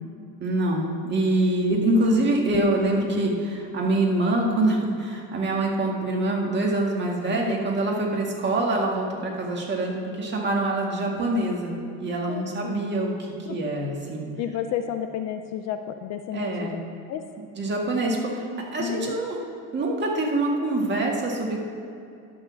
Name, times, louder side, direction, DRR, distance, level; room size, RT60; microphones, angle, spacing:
voice 1, 0.4-11.7 12.0-14.3 16.3-16.7 17.6-18.4 18.7-19.4 19.7-21.6, right 2 dB, 30° right, -1 dB, 1.9 m, -25 dB
sound 1, 2.4-2.9, left 4 dB, 80° left, 1.1 m, -35 dB
voice 2, 12.3-12.9 13.5-13.6 14.4-16.8 17.1-17.2 18.8-19.2, left 9 dB, 45° left, 7 dB, 0.5 m, -31 dB
10.5 x 6.5 x 7.0 m, 2.5 s
cardioid pair, 140°, 38 cm